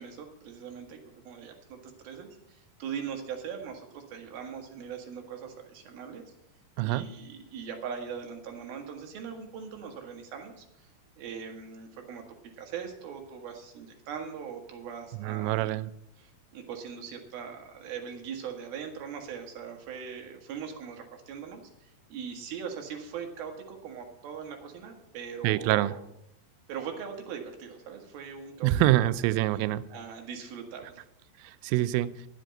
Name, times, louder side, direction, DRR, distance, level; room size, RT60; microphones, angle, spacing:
voice 1, 0.0-6.2 6.8-10.9 11.2-12.2 12.6-15.6 16.2-26.0 26.7-28.7 29.0-29.1 29.9-31.0, right 7 dB, 70° right, 3 dB, 3.3 m, -40 dB
voice 2, 15.2-15.9 25.4-26.0 28.6-29.8 31.4-32.1, right 15 dB, 90° right, 14 dB, 2.0 m, -25 dB
10.5 x 7.6 x 7.6 m, 0.79 s
omnidirectional pair, 4.6 m